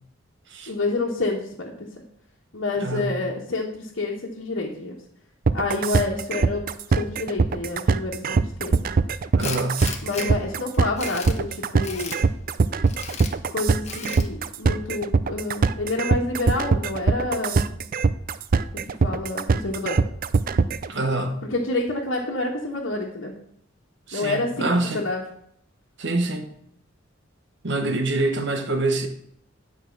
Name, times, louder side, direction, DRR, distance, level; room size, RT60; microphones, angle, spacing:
voice 1, 0.7-1.9 2.5-5.0 5.5-8.7 10.0-12.2 13.5-17.7 19.0-20.0 21.5-23.3 24.1-24.7 24.9-25.2, left 2 dB, 70° left, -5 dB, 1.4 m, -28 dB
voice 2, 2.8-3.2 9.3-9.9 20.9-21.4 24.1-25.0 26.0-26.5 27.6-29.1, right 2 dB, 65° right, 6 dB, 1.2 m, -25 dB
sound 1, 5.5-20.9, right 4 dB, 45° right, 0.4 m, -22 dB
Tools, 9.4-10.3 10.7-11.4 11.8-12.2 12.9-13.3 13.8-14.3, left 6 dB, 35° left, 1.0 m, -35 dB
10.0 x 4.6 x 6.0 m, 0.70 s
head